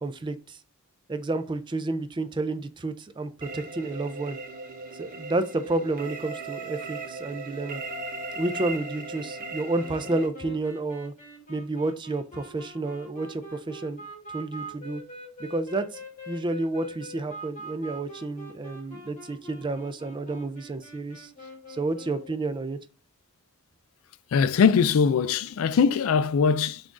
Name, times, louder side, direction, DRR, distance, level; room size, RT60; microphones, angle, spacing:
voice 1, 0.0-0.6 1.1-4.4 5.0-7.8 8.4-11.1 11.5-14.0 14.3-15.0 15.4-16.0 16.3-21.3 21.7-22.8, right 2 dB, 20° right, 0.4 m, -30 dB
sound 1, 3.4-10.3, right 3 dB, 40° right, 0.7 m, -37 dB
sound 2, 9.8-22.4, equal, 35° left, 1.6 m, -44 dB
voice 2, 24.3-26.8, left 6 dB, 70° left, 0.4 m, -21 dB
5.9 x 2.4 x 3.7 m
head